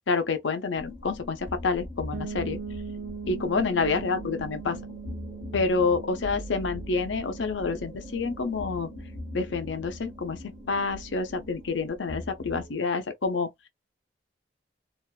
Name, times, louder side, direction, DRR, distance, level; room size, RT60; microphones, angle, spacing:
voice 1, 0.1-2.6 3.3-4.8 5.5-8.9 9.3-13.5, left 4 dB, 80° left, 0.6 m, -28 dB
sound 1, 0.7-12.7, left 1 dB, 30° left, 0.6 m, -41 dB
sound 2, 2.1-11.8, right 6 dB, 45° right, 0.3 m, -42 dB
2.4 x 2.2 x 2.3 m
head